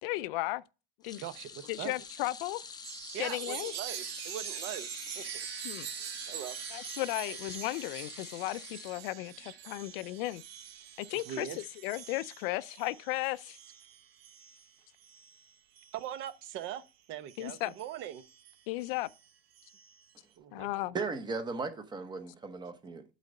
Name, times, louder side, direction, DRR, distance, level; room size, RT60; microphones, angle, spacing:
voice 1, 0.0-0.6 1.0-1.2 1.7-2.6 3.2-3.7 5.6-5.9 6.7-10.4 11.0-13.6 17.4-17.7 18.7-19.1 20.5-21.0, left 18 dB, 65° left, 0.5 m, -35 dB
sound 1, 1.0-9.5 9.9-10.1 11.3-11.4, left 5 dB, 15° left, 0.6 m, -47 dB
voice 2, 1.2-1.9 3.1-4.9 5.1-5.2 6.3-6.6 9.4-9.5 11.1-11.6 15.9-18.2 20.4-20.9, right 11 dB, 45° right, 0.8 m, -41 dB
Chime, 2.8-16.8 17.3-20.1, right 11 dB, 85° right, 1.2 m, -45 dB
voice 3, 20.9-23.0, right 4 dB, 15° right, 0.9 m, -36 dB
8.2 x 4.0 x 5.3 m
supercardioid pair, 150°, 30 cm